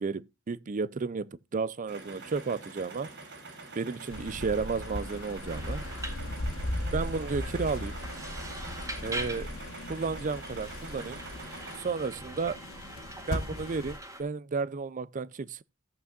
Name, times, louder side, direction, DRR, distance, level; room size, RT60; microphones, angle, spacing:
voice 1, 0.0-3.1 3.8-5.8 6.9-8.0 9.0-9.5 9.9-11.2 11.8-12.6 13.3-15.6, right 4 dB, 40° right, 0.4 m, -32 dB
sound 1, 1.9-11.8, right 3 dB, 60° right, 3.5 m, -45 dB
sound 2, 4.1-14.0, left 1 dB, 80° left, 1.1 m, -38 dB
sound 3, 5.5-14.2, right 1 dB, 15° right, 1.9 m, -44 dB
14.0 x 8.2 x 2.4 m
head